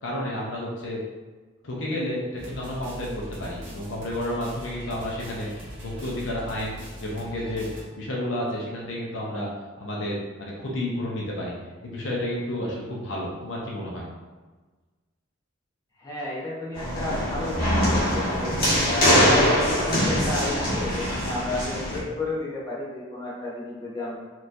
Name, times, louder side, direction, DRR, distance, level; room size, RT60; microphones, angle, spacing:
voice 1, 0.0-1.0 1.6-5.5 5.8-7.7 8.0-9.5 9.8-11.6 11.8-14.1, left 1 dB, 65° left, -3 dB, 0.8 m, -31 dB
sound 1, 2.4-7.8, equal, 65° right, 1.5 m, -41 dB
voice 2, 16.0-18.5 18.8-24.1, left 2 dB, 20° left, -7 dB, 1.0 m, -32 dB
sound 2, 16.7-22.0, equal, 50° left, 1.5 m, -23 dB
4.3 x 3.1 x 2.6 m, 1.3 s
head